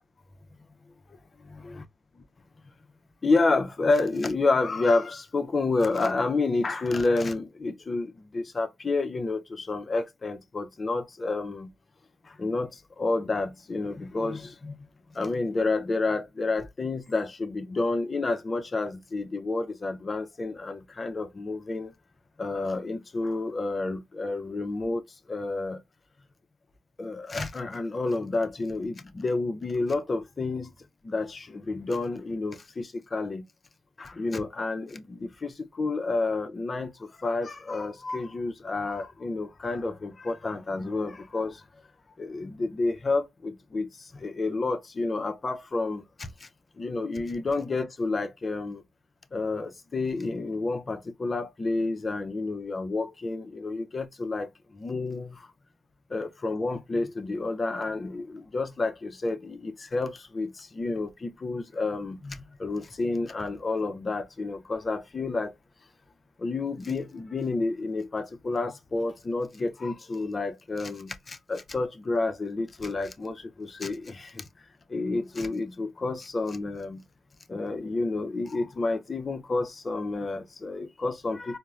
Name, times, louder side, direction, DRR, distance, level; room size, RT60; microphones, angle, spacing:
voice 1, 3.2-11.7 12.4-14.8 15.1-21.9 22.4-25.0 25.3-25.8 27.0-30.7 31.0-33.4 34.0-41.6 42.2-46.5 46.8-48.8 49.3-54.5 54.7-55.5 56.1-65.5 66.4-74.4 74.9-77.0 77.5-81.6, left 3 dB, 30° left, 0.5 m, -30 dB
4.2 x 2.0 x 2.3 m
cardioid pair, 95°, 0 cm